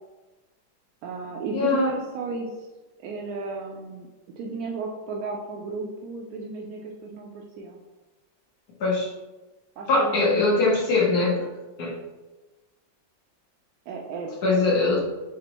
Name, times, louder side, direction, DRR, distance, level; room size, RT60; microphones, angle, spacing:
voice 1, 1.0-2.5 3.0-4.1 4.4-7.8 9.8-10.4 13.9-14.9, right 4 dB, 75° right, 0 dB, 0.8 m, -33 dB
voice 2, 1.5-1.9 8.8-9.1 9.9-11.5 11.8-12.0 14.4-15.0, left 3 dB, 60° left, -4 dB, 1.4 m, -22 dB
5.1 x 3.3 x 2.9 m, 1.2 s
omnidirectional pair, 2.1 m